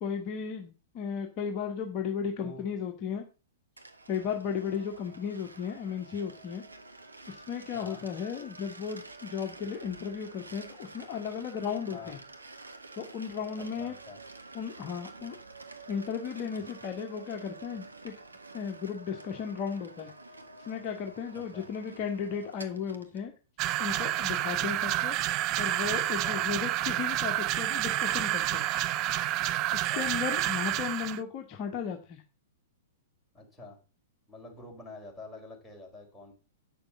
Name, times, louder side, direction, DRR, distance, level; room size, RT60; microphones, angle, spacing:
voice 1, 0.0-3.2 4.1-6.6 7.3-12.2 13.0-13.9 14.5-15.4 15.9-18.1 18.5-20.1 20.6-23.3 23.8-25.1 25.6-28.7 29.7-32.2, left 7 dB, 35° left, 3 dB, 1.3 m, -35 dB
voice 2, 2.0-2.6 7.7-8.0 11.9-12.1 13.6-14.2 21.3-21.7 26.2-26.5 29.7-30.1 33.3-33.8 34.3-36.3, left 3 dB, 5° left, -3 dB, 4.4 m, -47 dB
sound 1, 3.8-23.2, right 3 dB, 80° right, 1.3 m, -49 dB
sound 2, 23.6-31.2, right 14 dB, 35° right, 0.5 m, -29 dB
9.5 x 6.8 x 5.6 m, 0.32 s
figure-of-eight pair, 105°, 0 cm